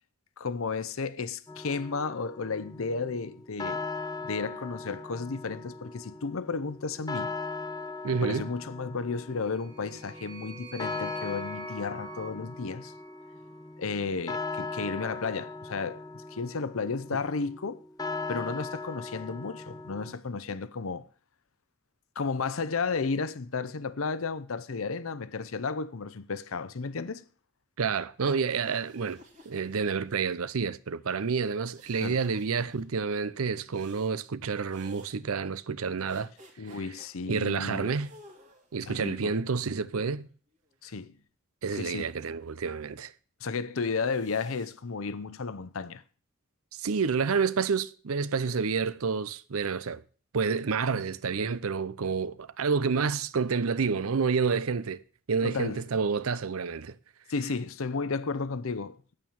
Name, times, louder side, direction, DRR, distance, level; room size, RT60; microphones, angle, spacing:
voice 1, 0.4-3.8 4.2-7.4 8.2-12.9 13.8-16.0 16.3-17.8 18.3-21.1 22.2-27.2 32.0-32.2 36.6-37.9 38.8-39.3 40.8-41.2 41.7-42.1 43.4-46.0 55.4-55.8 57.3-59.2, left 4 dB, 75° left, 0.7 m, -33 dB
sound 1, 1.5-20.1, left 3 dB, 15° left, 0.7 m, -39 dB
voice 2, 8.0-8.4 27.8-36.3 37.3-38.1 38.7-40.3 41.6-43.1 46.7-50.0 50.3-55.0 55.3-57.0, right 5 dB, 80° right, 0.6 m, -29 dB
sound 2, 9.3-13.7, right 5 dB, 20° right, 1.3 m, -48 dB
sound 3, 28.3-30.4 31.7-32.8 33.7-34.1 34.7-35.2 36.1-37.1 37.9-38.8 39.6-40.8 43.8-44.8, right 1 dB, 35° right, 2.1 m, -55 dB
9.1 x 8.7 x 7.1 m
head